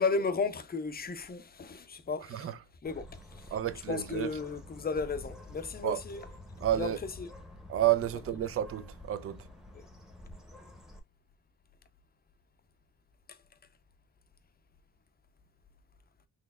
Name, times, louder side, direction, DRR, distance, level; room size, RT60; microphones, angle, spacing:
voice 1, 0.0-2.5 2.8-3.5 3.9-6.2 6.7-7.3 9.7-9.9 13.3-13.4, left 4 dB, 25° left, 0.6 m, -34 dB
Bird, 2.8-11.0, left 1 dB, ahead, 1.0 m, -49 dB
voice 2, 3.5-4.3 5.8-6.0 6.6-7.0 7.7-9.5, right 12 dB, 40° right, 0.5 m, -30 dB
4.1 x 3.2 x 2.4 m
cardioid pair, 105°, 36 cm